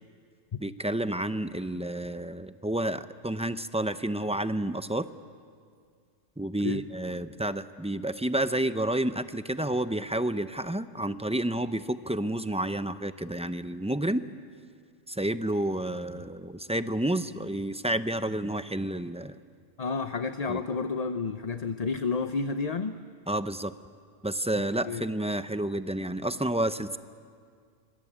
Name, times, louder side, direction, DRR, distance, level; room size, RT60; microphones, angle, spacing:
voice 1, 0.6-5.1 6.4-14.2 15.1-19.4 20.5-20.6 23.3-23.7 24.2-27.0, right 1 dB, 10° right, 11 dB, 0.4 m, -30 dB
voice 2, 19.8-23.0 24.8-25.0, left 4 dB, 40° left, 9 dB, 0.7 m, -30 dB
25.5 x 25.5 x 8.7 m, 2.1 s
omnidirectional pair, 1.3 m